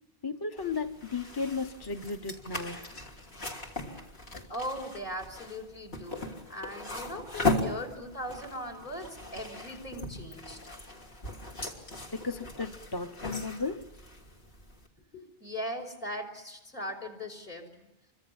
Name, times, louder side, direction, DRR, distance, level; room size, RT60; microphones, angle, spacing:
voice 1, 0.2-2.8 12.1-13.9, left 4 dB, 25° left, 0.9 m, -35 dB
sound 1, 0.6-14.9, left 2 dB, 80° left, 3.4 m, -38 dB
voice 2, 4.3-10.6 15.1-17.9, equal, 60° left, 5.1 m, -39 dB
27.5 x 25.0 x 7.2 m
omnidirectional pair, 1.1 m